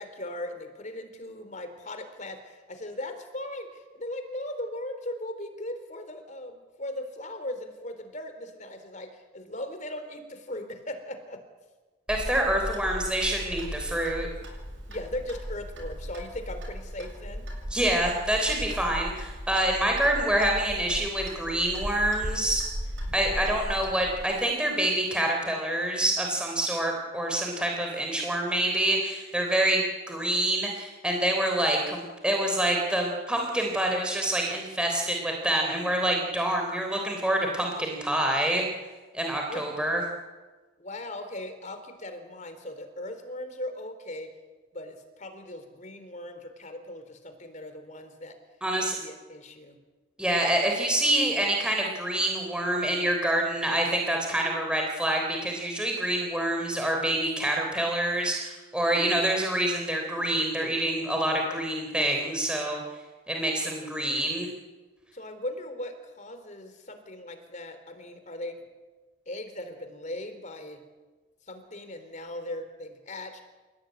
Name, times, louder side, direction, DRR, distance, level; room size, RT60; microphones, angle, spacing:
voice 1, 0.0-11.4 14.9-17.5 39.5-40.0 40.8-44.3 44.7-48.4 49.0-49.8 65.1-68.6 69.3-70.8 71.5-73.4, left 1 dB, 40° left, 8 dB, 3.7 m, -38 dB
voice 2, 12.1-14.3 17.7-22.6 23.1-38.6 39.1-40.0 48.6-49.0 50.2-62.8 63.3-64.5, right 1 dB, 5° right, 1 dB, 3.4 m, -26 dB
Clock, 12.1-24.2, equal, 70° right, 7.4 m, -37 dB
28.0 x 17.0 x 9.3 m, 1.3 s
head